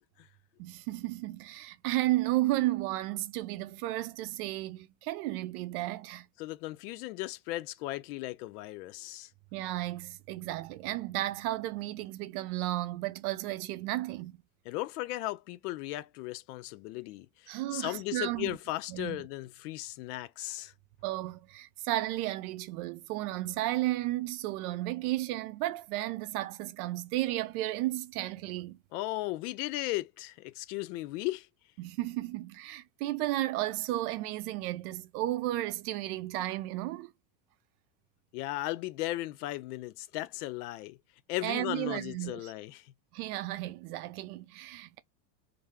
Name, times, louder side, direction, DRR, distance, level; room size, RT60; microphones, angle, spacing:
voice 1, 0.6-6.3 9.5-14.3 17.5-18.6 18.9-19.2 21.0-28.8 31.8-37.1 41.4-42.5 43.1-45.0, right 16 dB, 75° right, 0.5 m, -33 dB
voice 2, 6.4-9.3 14.7-20.7 28.9-31.5 38.3-41.0 41.3-42.9, left 17 dB, 80° left, 0.5 m, -36 dB
2.5 x 2.0 x 3.4 m
supercardioid pair, 140°, 45 cm